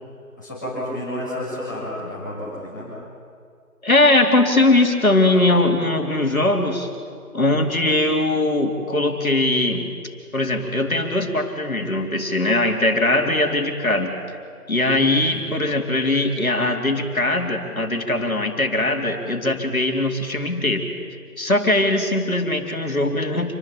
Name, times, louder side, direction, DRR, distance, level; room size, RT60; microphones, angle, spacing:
voice 1, 0.4-2.9 15.3-15.5, left 1 dB, 10° left, -9 dB, 7.1 m, -31 dB
voice 2, 3.8-6.9 7.3-9.9 10.3-14.1 14.7-20.9 21.4-23.5, left 2 dB, 65° left, 3 dB, 4.2 m, -20 dB
28.5 x 21.5 x 8.8 m, 2.2 s
figure-of-eight pair, 180°, 46 cm